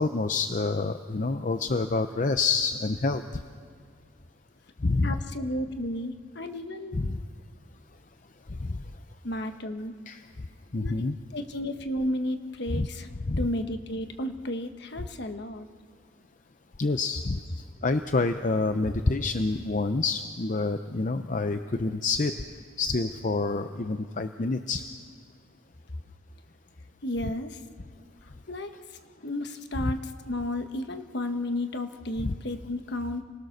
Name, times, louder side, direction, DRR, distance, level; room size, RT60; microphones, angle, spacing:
voice 1, 0.0-3.2 4.8-5.1 6.9-7.2 8.6-8.8 10.1-10.2 10.7-11.2 12.7-12.9 13.3-13.4 16.8-17.4 17.8-22.3 22.8-24.8 32.2-32.3, left 3 dB, 40° left, 8 dB, 0.6 m, -27 dB
voice 2, 4.8-7.0 9.2-9.9 10.8-11.1 11.3-13.1 13.4-15.7 18.9-19.0 27.0-27.6 28.5-33.2, left 1 dB, 55° left, 7 dB, 1.2 m, -33 dB
28.0 x 19.5 x 6.6 m, 2.2 s
head